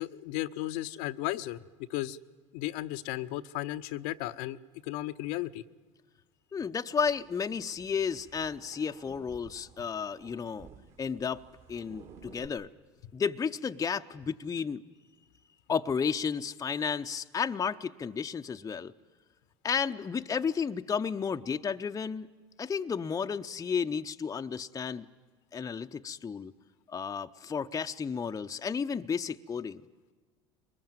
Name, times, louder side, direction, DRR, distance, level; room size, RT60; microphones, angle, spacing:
voice 1, 0.0-1.6 1.9-2.2 2.5-4.6 4.9-5.6, left 16 dB, 65° left, 10 dB, 0.8 m, -34 dB
voice 2, 6.5-10.7 11.0-11.4 11.7-12.7 13.1-14.8 15.7-18.9 19.6-22.3 22.6-25.1 25.5-26.5 26.9-29.8, left 6 dB, 20° left, 7 dB, 0.7 m, -32 dB
sound 1, 7.0-12.5, right 6 dB, 50° right, 3.2 m, -55 dB
23.0 x 20.5 x 9.1 m, 1.4 s
hypercardioid pair, 80°, 15 cm